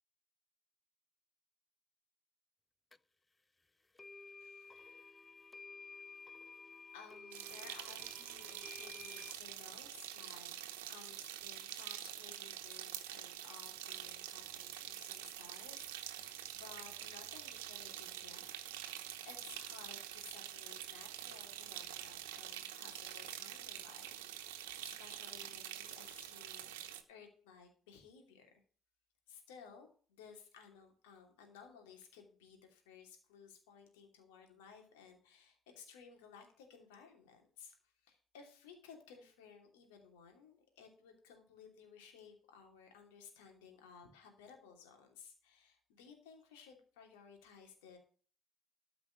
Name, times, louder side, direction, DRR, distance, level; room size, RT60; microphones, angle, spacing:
sound 1, 2.9-3.0 4.0-9.3, left 4 dB, 20° left, 0.5 m, -53 dB
voice 1, 4.4-5.2 6.9-10.5 10.9-18.4 19.2-28.6 29.3-48.0, left 6 dB, 75° left, 3 dB, 2.8 m, -58 dB
sound 2, 7.3-27.0, right 12 dB, 80° right, 1.0 m, -46 dB
13.0 x 5.1 x 7.9 m, 0.43 s
hypercardioid pair, 50°, 0 cm